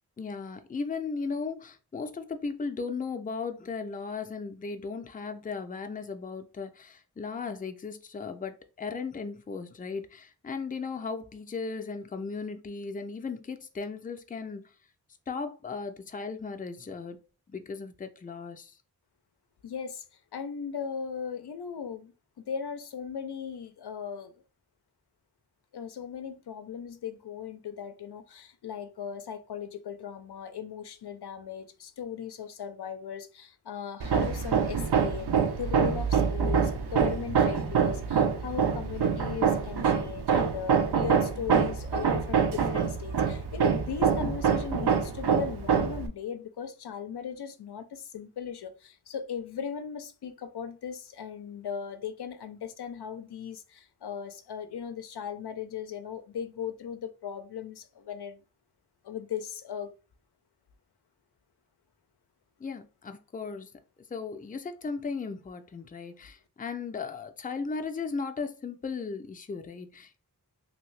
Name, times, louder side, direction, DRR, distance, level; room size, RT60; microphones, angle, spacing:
voice 1, 0.2-14.7 15.3-17.2 17.5-18.8 62.6-63.7 64.1-70.2, left 4 dB, 25° left, 0.4 m, -36 dB
voice 2, 19.6-20.0 20.3-22.1 22.5-24.3 25.7-58.4 59.0-59.9, left 7 dB, 85° left, 0.5 m, -38 dB
Hammer, 34.0-46.1, right 6 dB, 85° right, 0.5 m, -26 dB
2.8 x 2.6 x 3.1 m
wide cardioid pair, 75°, 38 cm